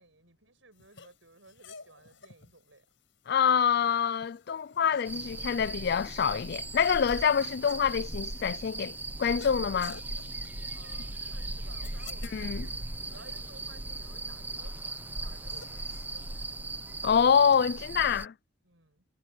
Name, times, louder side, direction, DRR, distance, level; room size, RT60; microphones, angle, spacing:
voice 1, 0.0-2.8 10.7-14.8 15.1-16.5 18.6-19.0, right 3 dB, 70° right, 6.8 m, -56 dB
sound 1, 0.7-17.6, left 5 dB, 70° left, 5.8 m, -55 dB
voice 2, 3.3-8.9 9.2-10.0 12.3-12.7 17.0-18.3, left 7 dB, 50° left, 0.4 m, -26 dB
sound 2, 5.1-18.3, right 2 dB, 10° right, 0.7 m, -38 dB
head